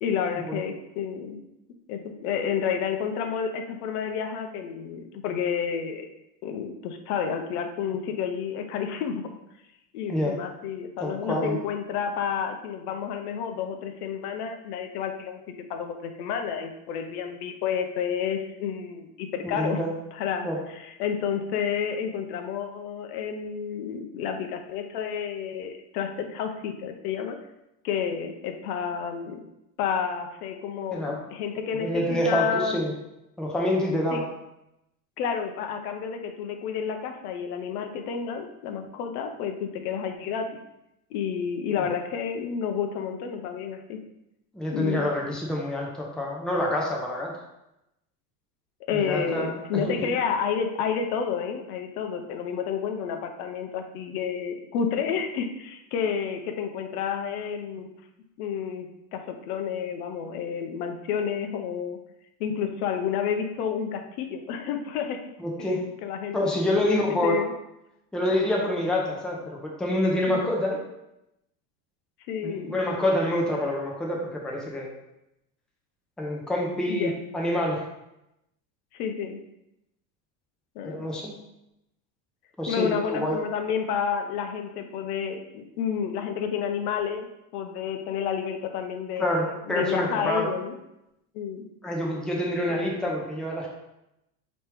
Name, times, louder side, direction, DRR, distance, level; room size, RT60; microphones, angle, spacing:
voice 1, 0.0-1.4 1.9-6.1 6.4-9.3 9.9-19.8 20.1-27.4 27.8-29.4 29.8-32.8 34.1-34.2 35.2-40.6 41.1-44.0 44.7-45.0 48.9-57.9 58.4-62.0 62.4-65.2 65.6-66.4 66.8-67.5 70.3-70.4 72.3-72.8 76.9-77.2 78.9-79.4 80.8-81.1 82.7-87.3 87.5-90.7 91.3-91.7 92.7-92.9, left 7 dB, 70° left, 5 dB, 0.7 m, -30 dB
voice 2, 11.0-11.6 19.4-19.9 20.4-20.6 30.9-31.2 31.5-32.9 33.4-34.2 41.8-41.9 44.5-47.3 48.9-49.9 65.4-65.8 66.3-67.4 68.1-70.8 72.4-74.9 76.2-77.8 80.8-81.4 82.6-83.4 89.2-90.5 91.8-93.7, left 1 dB, ahead, -2 dB, 0.6 m, -27 dB
4.4 x 3.1 x 3.4 m, 0.87 s
supercardioid pair, 120°, 47 cm